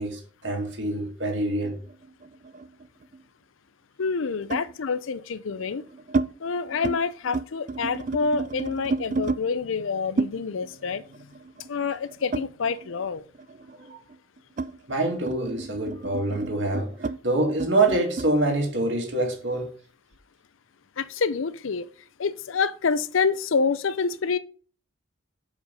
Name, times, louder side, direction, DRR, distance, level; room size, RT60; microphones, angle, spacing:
voice 1, 0.0-1.8 13.8-14.0 14.9-19.7, right 2 dB, 60° right, 2.2 m, -26 dB
sound 1, 1.6-3.2 4.5-4.7 5.5-6.3 6.6-7.0 7.2-9.4 10.2-13.0 13.3-18.3, right 3 dB, 40° right, 0.4 m, -32 dB
voice 2, 4.0-5.8 6.4-11.0 11.7-13.2 21.0-21.9 22.2-24.4, left 5 dB, 75° left, 0.5 m, -27 dB
6.4 x 5.1 x 5.3 m
head